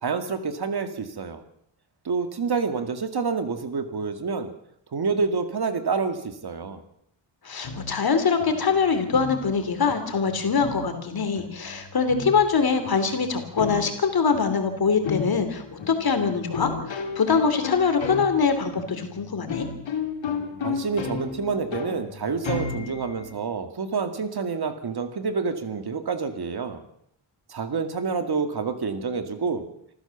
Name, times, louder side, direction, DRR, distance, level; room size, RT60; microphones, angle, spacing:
voice 1, 0.0-1.4 2.0-4.5 4.9-6.8 20.6-26.8 27.5-29.6, right 5 dB, 55° right, 8 dB, 2.4 m, -28 dB
voice 2, 7.4-19.7, left 5 dB, 55° left, 8 dB, 3.3 m, -23 dB
sound 1, 7.6-23.3, left 5 dB, 80° left, 3.5 m, -35 dB
27.0 x 14.5 x 7.2 m, 0.72 s
wide cardioid pair, 175°, 45 cm